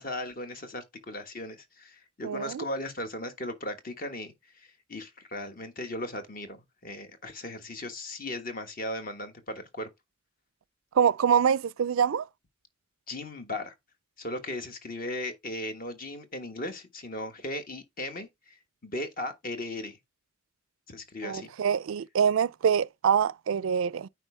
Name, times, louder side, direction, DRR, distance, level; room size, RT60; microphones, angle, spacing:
voice 1, 0.0-9.9 13.1-13.7 14.2-18.6 18.8-20.0 20.9-21.5, left 1 dB, 45° left, 1.3 m, -37 dB
voice 2, 2.2-2.6 11.0-12.2 21.2-24.1, right 7 dB, 85° right, 0.4 m, -25 dB
9.1 x 4.7 x 3.3 m
head